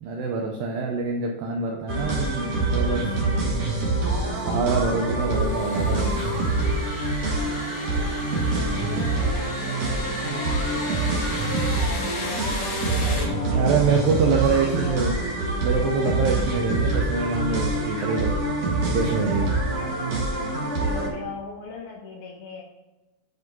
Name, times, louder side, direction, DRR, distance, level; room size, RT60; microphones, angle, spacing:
voice 1, 0.0-3.1 4.4-6.4 13.5-15.2 15.6-18.4 18.9-19.6, right 5 dB, 85° right, 1 dB, 2.0 m, -25 dB
sound 1, 1.9-21.1, right 2 dB, 50° right, 1.9 m, -25 dB
sound 2, 5.2-13.2, left 2 dB, 55° left, 2.8 m, -35 dB
voice 2, 8.3-11.4 11.9-15.2 19.7-20.2 20.7-22.6, left 4 dB, 70° left, -2 dB, 1.8 m, -40 dB
9.7 x 5.3 x 3.9 m, 1.1 s
omnidirectional pair, 5.1 m